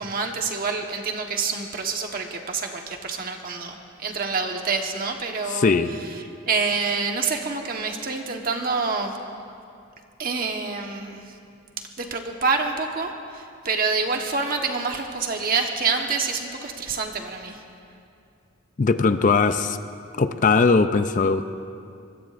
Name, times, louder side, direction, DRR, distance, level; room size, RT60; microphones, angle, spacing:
voice 1, 0.0-5.7 6.5-9.2 10.2-11.3 12.0-17.6, right 4 dB, 45° right, 3 dB, 1.3 m, -27 dB
voice 2, 5.5-5.9 18.8-19.8 20.2-21.4, left 4 dB, 40° left, 10 dB, 0.5 m, -19 dB
23.5 x 22.0 x 2.6 m, 2.5 s
head